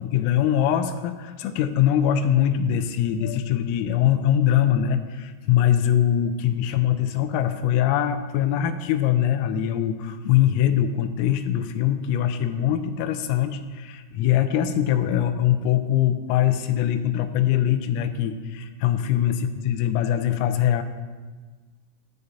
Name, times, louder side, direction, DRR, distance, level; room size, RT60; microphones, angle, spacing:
voice 1, 0.0-20.8, left 10 dB, 90° left, 8 dB, 3.3 m, -22 dB
18.5 x 8.1 x 4.2 m, 1.4 s
omnidirectional pair, 5.9 m